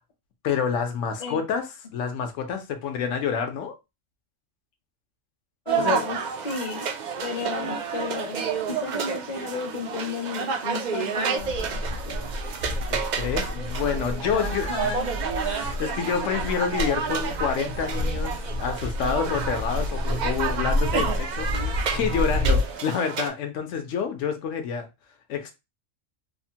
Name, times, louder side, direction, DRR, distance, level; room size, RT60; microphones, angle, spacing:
voice 1, 0.4-1.6 1.9-3.7 5.8-6.0 12.9-14.9 15.4-24.9 25.3-25.5, left 6 dB, 75° left, 0.9 m, -28 dB
voice 2, 5.7-6.2 6.4-6.9 7.2-12.3 14.3-15.1, left 5 dB, 45° left, 0.6 m, -33 dB
sound 1, 5.7-23.3, right 6 dB, 90° right, 0.4 m, -30 dB
sound 2, 11.4-22.7, left 1 dB, 70° right, 1.1 m, -29 dB
3.1 x 2.1 x 2.6 m
omnidirectional pair, 1.3 m